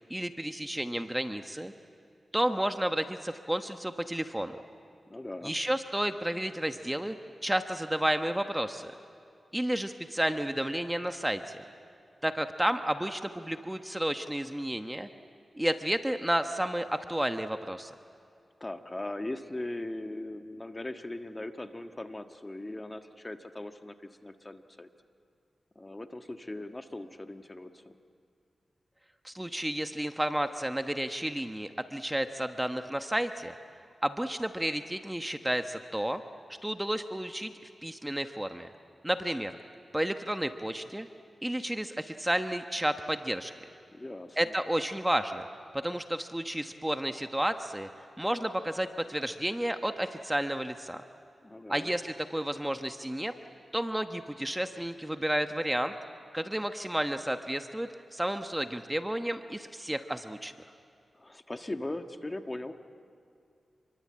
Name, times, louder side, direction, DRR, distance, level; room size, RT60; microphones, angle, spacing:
voice 1, 0.1-1.7 2.3-4.6 5.4-7.1 7.4-8.9 9.5-11.6 12.2-15.1 15.5-17.9 29.2-33.5 34.0-36.2 36.6-37.5 37.8-38.7 39.0-39.5 39.9-41.1 41.4-43.5 44.4-45.5 45.7-47.9 48.2-51.0 51.7-53.3 53.7-55.9 56.3-60.5, right 1 dB, 10° right, 7 dB, 1.1 m, -31 dB
voice 2, 5.1-5.5 18.6-24.9 25.7-27.9 43.9-44.5 51.4-51.9 61.1-62.7, left 1 dB, 25° left, 7 dB, 1.5 m, -39 dB
28.0 x 23.0 x 8.7 m, 2.4 s
cardioid pair, 60°, 0 cm